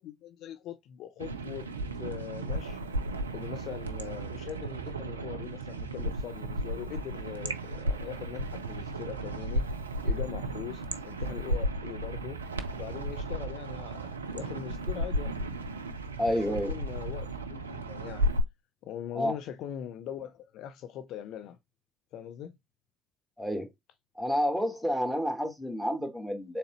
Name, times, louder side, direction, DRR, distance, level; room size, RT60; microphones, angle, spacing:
voice 1, 0.0-1.7 2.0-2.8 3.3-9.7 10.0-12.4 12.7-15.4 16.3-18.3 18.8-21.6 22.1-22.5, left 10 dB, 60° left, 0.4 m, -41 dB
sound 1, 1.2-18.4, right 1 dB, 85° right, 0.3 m, -34 dB
voice 2, 16.2-16.7 19.1-19.3 23.4-23.7 24.2-26.6, equal, 5° left, 1.4 m, -29 dB
3.7 x 2.9 x 3.0 m
figure-of-eight pair, 55°, 0 cm